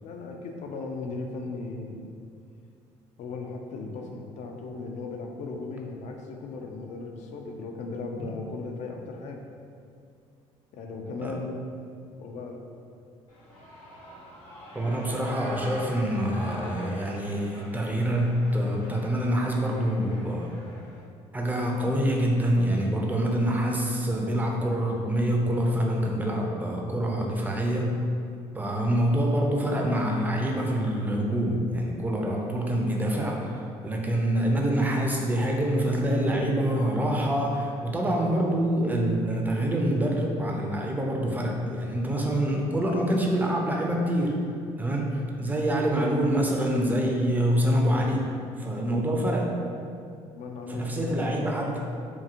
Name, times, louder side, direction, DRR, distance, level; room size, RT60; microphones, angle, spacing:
voice 1, 0.0-2.0 3.2-9.4 10.7-11.6 12.2-12.6 45.5-45.8 48.6-48.8 50.3-51.3, left 3 dB, 60° left, 2 dB, 0.4 m, -37 dB
Shout / Cheering, 13.3-21.0, equal, 80° left, 1.0 m, -44 dB
voice 2, 14.7-20.5 21.3-28.0 28.5-44.4 44.8-48.3 48.6-49.5 50.7-51.8, right 1 dB, 15° right, 0 dB, 0.4 m, -26 dB
2.9 x 2.5 x 2.4 m, 2.4 s
supercardioid pair, 75°, 13 cm